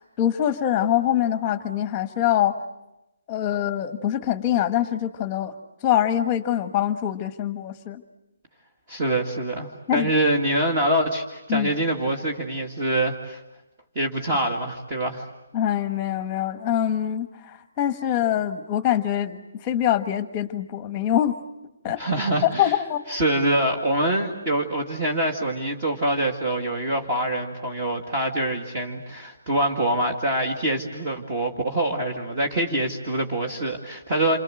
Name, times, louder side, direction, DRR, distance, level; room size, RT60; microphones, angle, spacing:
voice 1, 0.0-2.5 3.3-5.5 5.8-8.0 9.9-10.1 11.5-11.7 15.5-21.4 21.8-22.0 22.4-23.0, left 11 dB, 15° left, 9 dB, 1.4 m, -24 dB
voice 2, 8.9-13.4 14.0-15.3 22.0-22.8 23.1-34.4, right 1 dB, 20° right, 1 dB, 2.2 m, -25 dB
28.0 x 26.5 x 7.8 m, 0.97 s
hypercardioid pair, 170°, 0 cm